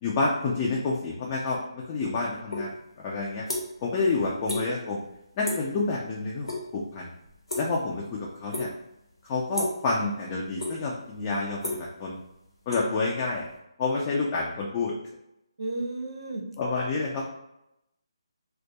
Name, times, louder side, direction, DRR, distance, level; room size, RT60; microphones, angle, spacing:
voice 1, 0.0-3.4 3.8-5.0 5.4-7.1 7.6-8.7 9.2-12.2 12.7-13.5 13.8-14.9 16.6-17.2, left 3 dB, 25° left, -3 dB, 0.4 m, -29 dB
sound 1, 2.5-2.7 3.0-3.9 4.2-4.6 4.9-5.2 5.4-5.7 6.1-6.6 6.9-8.0 8.5-8.9 9.5-9.9 10.3-11.0 11.3-13.5, left 2 dB, 80° left, 1.0 m, -33 dB
voice 2, 15.6-16.4, right 2 dB, 65° right, 2 dB, 0.6 m, -32 dB
2.2 x 2.1 x 2.7 m, 0.84 s
figure-of-eight pair, 150°, 3 cm